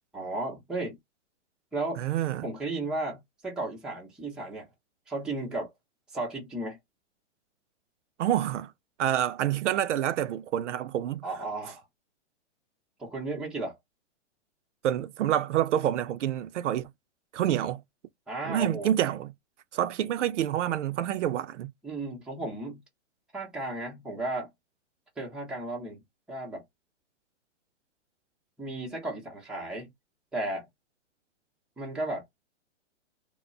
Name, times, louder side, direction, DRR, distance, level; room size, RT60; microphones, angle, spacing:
voice 1, 0.1-1.0 1.7-2.0 2.4-4.7 5.1-5.7 6.1-6.8 11.2-11.8 13.0-13.8 18.3-18.9 20.0-20.1 21.8-22.8 23.3-24.5 25.2-26.0 26.3-26.6 28.6-29.9 30.3-30.7 31.8-32.2, right 2 dB, ahead, 0.6 m, -34 dB
voice 2, 2.0-2.5 8.2-8.7 9.0-11.2 14.8-16.9 17.3-17.8 18.4-19.3 19.7-21.7, right 11 dB, 75° right, 0.5 m, -27 dB
2.2 x 2.1 x 3.7 m
hypercardioid pair, 140°, 36 cm